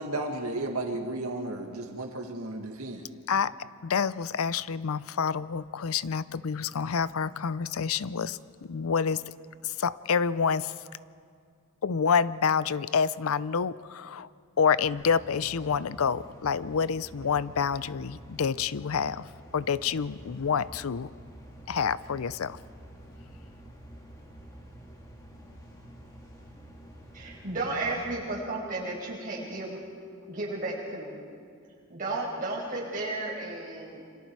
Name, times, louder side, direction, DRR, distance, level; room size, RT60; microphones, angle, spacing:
voice 1, 0.0-3.1, right 2 dB, 80° right, 2 dB, 1.9 m, -33 dB
voice 2, 3.3-9.2 9.6-10.7 11.8-14.3 14.6-19.3 19.5-21.1 21.7-22.6, left 6 dB, 75° left, 17 dB, 0.5 m, -28 dB
sound 1, 14.9-28.1, right 1 dB, 15° left, 2.7 m, -49 dB
voice 3, 27.1-29.8 30.3-31.2 31.9-34.0, right 2 dB, 40° right, -4 dB, 5.8 m, -33 dB
27.5 x 26.0 x 4.7 m, 2.2 s
head